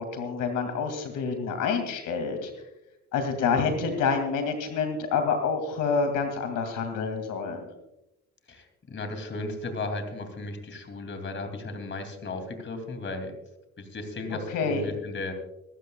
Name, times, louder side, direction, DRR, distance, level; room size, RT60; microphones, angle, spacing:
voice 1, 0.0-2.5 3.1-7.7 14.5-14.8, left 5 dB, 85° left, 6 dB, 2.5 m, -27 dB
voice 2, 3.4-3.8 8.5-13.3 13.8-15.3, left 2 dB, 40° left, 6 dB, 2.8 m, -35 dB
24.0 x 13.0 x 2.4 m, 0.90 s
cardioid pair, 90°, 30 cm